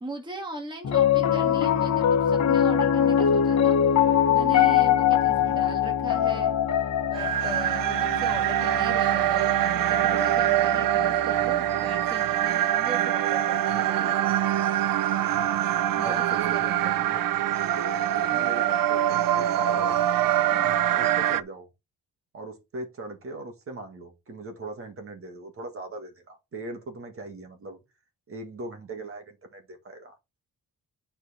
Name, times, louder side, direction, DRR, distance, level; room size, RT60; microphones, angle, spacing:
voice 1, 0.0-3.8 4.3-6.7 7.1-14.4 16.0-17.1 20.5-20.8, right 2 dB, 15° right, 1.7 m, -39 dB
Piano, 0.8-11.2, left 9 dB, 55° left, 1.1 m, -23 dB
voice 2, 5.2-5.7 16.0-17.2 17.5-20.0 20.9-21.7 22.3-27.8 28.3-30.2, right 2 dB, 40° right, 2.0 m, -39 dB
sound 1, 7.1-21.4, right 12 dB, 85° right, 0.6 m, -24 dB
9.6 x 4.5 x 4.4 m
wide cardioid pair, 175°, 33 cm